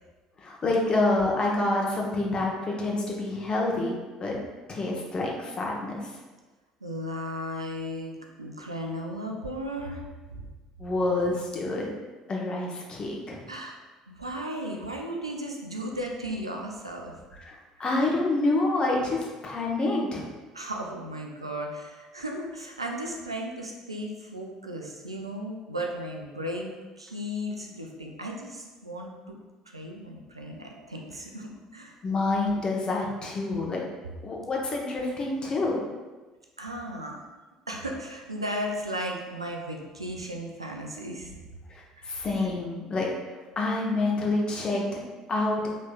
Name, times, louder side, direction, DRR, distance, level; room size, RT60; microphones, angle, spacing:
voice 1, 0.4-4.4 4.7-6.0 10.8-11.9 12.3-13.4 17.4-20.2 32.0-33.8 34.2-35.8 41.7-43.1 43.6-44.8 45.3-45.6, left 2 dB, 30° left, -2 dB, 0.9 m, -27 dB
voice 2, 6.8-10.0 10.3-10.4 13.5-17.2 20.5-29.4 29.7-32.0 36.6-37.3 37.7-41.4 42.0-42.5, equal, 90° right, 1 dB, 0.4 m, -35 dB
5.1 x 3.1 x 2.3 m, 1.3 s
figure-of-eight pair, 60°, 3 cm